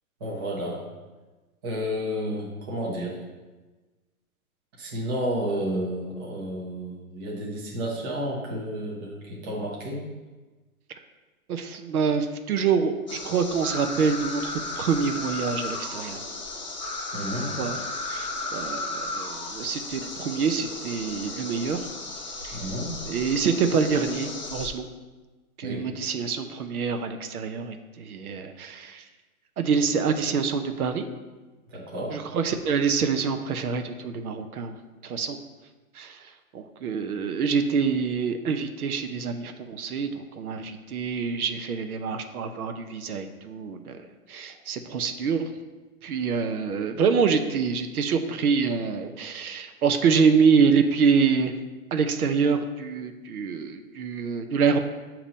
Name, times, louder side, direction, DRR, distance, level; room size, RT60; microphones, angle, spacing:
voice 1, 0.2-0.8 1.6-3.2 4.8-10.0 17.1-17.6 22.5-22.9 25.6-25.8 31.7-32.2, equal, 15° right, -4 dB, 0.7 m, -31 dB
voice 2, 11.5-16.2 17.6-17.8 18.1-21.8 22.4-22.6 23.1-24.9 25.6-29.0 29.6-31.1 32.1-34.7 35.0-35.4 35.9-44.0 44.3-45.4 46.0-51.5 51.9-54.8, right 5 dB, 75° right, 8 dB, 0.7 m, -26 dB
sound 1, 13.1-24.7, left 2 dB, 35° left, 0.4 m, -34 dB
6.9 x 3.0 x 5.1 m, 1.2 s
hypercardioid pair, 160°, 44 cm